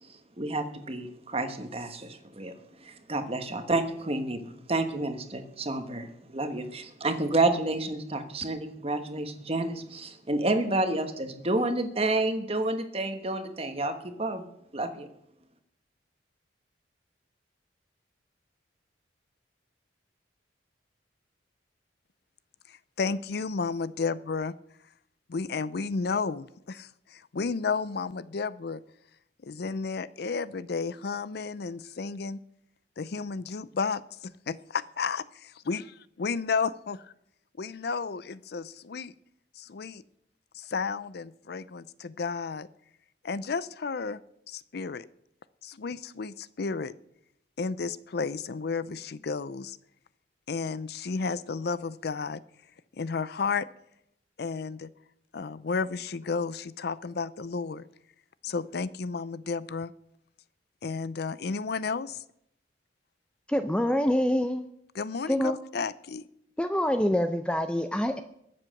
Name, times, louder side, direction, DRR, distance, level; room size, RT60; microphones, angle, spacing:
voice 1, 0.0-14.4 14.7-15.1, right 2 dB, 30° right, 7 dB, 1.4 m, -30 dB
voice 2, 22.7-24.5 25.3-28.8 29.4-32.4 33.0-35.8 36.2-37.0 37.6-39.1 39.6-40.0 40.5-42.7 43.2-44.2 44.5-45.1 45.6-46.9 47.6-49.8 50.5-52.4 53.0-53.7 54.4-54.9 55.3-57.9 58.4-59.9 60.8-62.2 64.9-66.3, left 4 dB, 60° left, 17 dB, 0.5 m, -32 dB
voice 3, 63.5-64.7 65.3-65.6 66.6-68.2, equal, 5° left, 8 dB, 0.5 m, -26 dB
22.0 x 7.6 x 6.5 m, 0.78 s
head